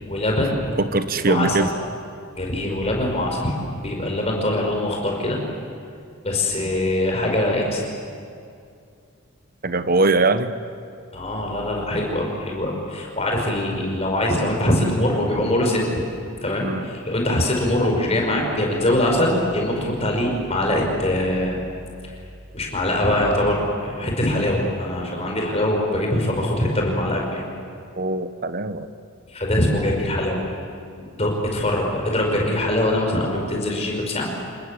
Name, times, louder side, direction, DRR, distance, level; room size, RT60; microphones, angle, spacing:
voice 1, 0.1-0.6 1.1-1.7 2.3-3.5 3.8-5.4 6.2-7.9 11.1-15.9 16.4-21.6 22.0-22.2 22.5-27.4 29.3-30.4 31.0-34.3, left 1 dB, 30° left, 0 dB, 5.3 m, -23 dB
voice 2, 0.8-1.7 9.6-10.6 16.6-16.9 27.9-28.9, right 3 dB, 40° right, 11 dB, 1.0 m, -21 dB
28.5 x 20.5 x 8.4 m, 2.4 s
head